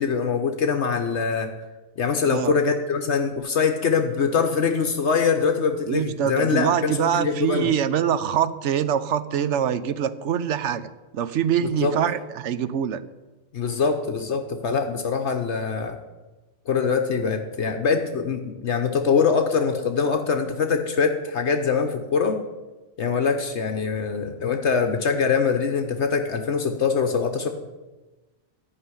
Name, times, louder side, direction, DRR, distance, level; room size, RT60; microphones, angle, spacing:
voice 1, 0.0-1.5 2.0-7.7 11.8-11.9 13.5-16.0 16.7-22.4 23.0-27.5, left 5 dB, 65° left, 5 dB, 1.2 m, -23 dB
voice 2, 5.9-13.0, right 9 dB, 75° right, 13 dB, 1.0 m, -24 dB
14.0 x 5.9 x 9.7 m, 1.2 s
omnidirectional pair, 1.2 m